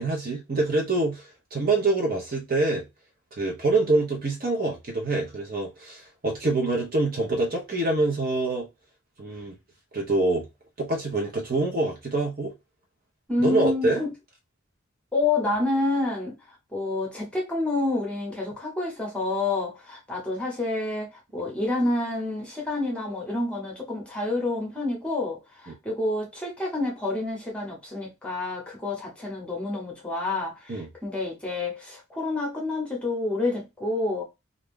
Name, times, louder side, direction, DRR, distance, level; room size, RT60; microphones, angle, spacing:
voice 1, 0.0-2.8 3.4-8.7 9.2-9.5 9.9-10.5 10.8-12.5 13.4-14.0 30.7-30.9, right 2 dB, 45° right, 0.7 m, -25 dB
voice 2, 13.3-14.1 15.1-34.2, left 2 dB, 5° left, 0.9 m, -28 dB
2.5 x 2.3 x 3.5 m
head